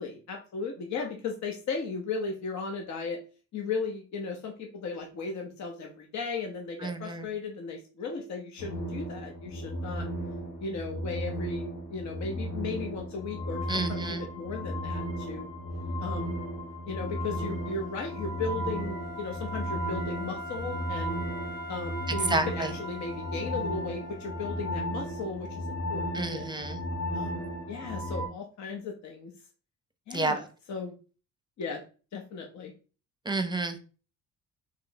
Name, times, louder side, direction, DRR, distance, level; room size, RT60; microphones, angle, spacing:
voice 1, 0.0-3.2 3.5-10.1 10.6-15.5 16.0-16.4 16.9-21.2 21.7-26.6 27.1-29.3 30.1-30.9 31.6-31.8 32.1-32.7, left 4 dB, 65° left, 2 dB, 0.9 m, -36 dB
voice 2, 6.8-7.3 13.7-14.2 22.3-22.7 26.1-26.8 30.1-30.3 33.3-33.9, right 2 dB, 15° right, 8 dB, 0.7 m, -30 dB
sound 1, 8.6-28.3, equal, 85° left, 1.3 m, -35 dB
Wind instrument woodwind instrument, 17.0-24.8, left 2 dB, 35° left, 1.0 m, -44 dB
3.3 x 3.1 x 3.9 m, 0.36 s
cardioid pair, 90°, 30 cm